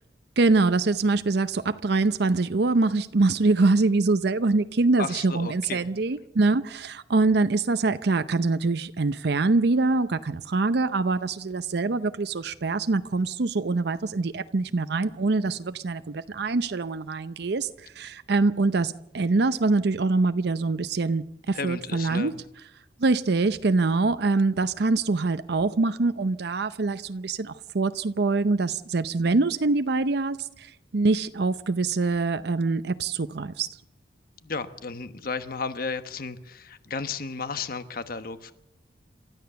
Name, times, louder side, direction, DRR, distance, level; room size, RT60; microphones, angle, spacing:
voice 1, 0.4-22.3 23.0-33.7, right 3 dB, 65° right, 0.6 m, -24 dB
voice 2, 5.0-5.9 21.5-22.4 34.4-38.5, left 4 dB, 55° left, 1.2 m, -33 dB
28.5 x 13.5 x 6.9 m
head